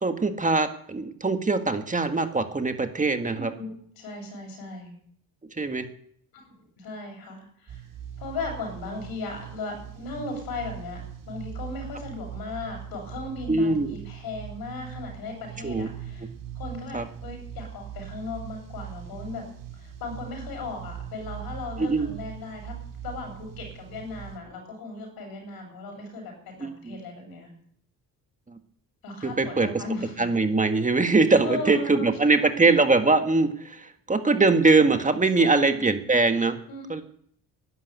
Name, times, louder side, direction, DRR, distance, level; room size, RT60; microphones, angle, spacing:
voice 1, 0.0-3.5 5.6-5.8 13.5-14.0 15.6-15.9 16.9-17.0 21.8-22.1 26.6-27.0 29.2-29.7 30.2-36.6 36.9-37.0, right 3 dB, 20° right, 7 dB, 1.7 m, -22 dB
voice 2, 3.3-5.0 6.3-6.5 6.8-7.8 8.2-16.3 16.5-19.5 19.7-22.8 23.0-27.5 29.0-30.4 31.4-32.7 35.4-35.9 36.7-36.9, left 3 dB, 80° left, 3 dB, 7.4 m, -37 dB
sound 1, 7.7-24.4, right 9 dB, 60° right, 3.2 m, -40 dB
12.5 x 11.0 x 9.5 m, 0.65 s
cardioid pair, 100°, 35 cm